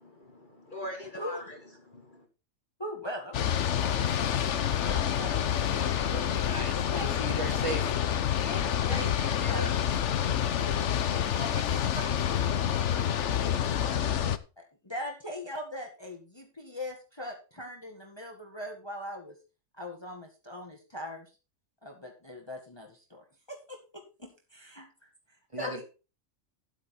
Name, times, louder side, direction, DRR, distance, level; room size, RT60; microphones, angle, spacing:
voice 1, 0.0-2.3 8.6-10.3, equal, 40° left, 2.3 m, -42 dB
voice 2, 2.8-4.4 4.9-5.6 6.4-7.1 8.4-10.2 11.1-12.6 12.9-14.0 14.6-19.4 19.8-21.3 21.8-25.1 25.6-25.8, left 1 dB, 20° left, 1.9 m, -41 dB
sound 1, 3.3-14.4, left 9 dB, 65° left, 1.1 m, -28 dB
voice 3, 6.1-8.0 25.5-25.8, right 2 dB, 25° right, 2.4 m, -37 dB
11.5 x 8.2 x 4.3 m
omnidirectional pair, 1.3 m